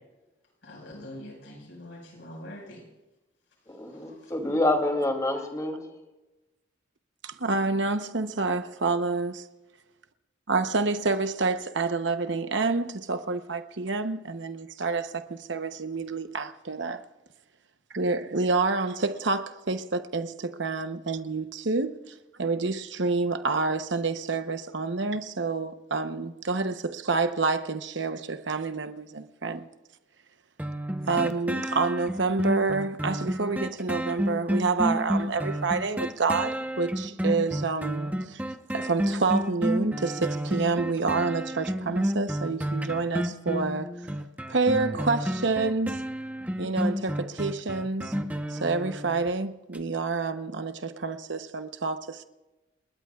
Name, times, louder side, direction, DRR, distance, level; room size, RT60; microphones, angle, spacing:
voice 1, 0.6-2.8 4.2-4.3 5.3-5.4, left 1 dB, 70° left, 5.5 m, -43 dB
voice 2, 3.7-5.8, left 1 dB, 20° left, 2.8 m, -27 dB
voice 3, 7.2-9.5 10.5-17.0 17.9-29.7 31.1-38.4 38.7-43.9 44.5-46.0 46.6-48.1 48.5-52.3, right 3 dB, 65° right, 0.9 m, -28 dB
sound 1, 30.6-49.3 49.7-49.8, equal, 10° right, 0.9 m, -30 dB
30.0 x 20.0 x 2.4 m
head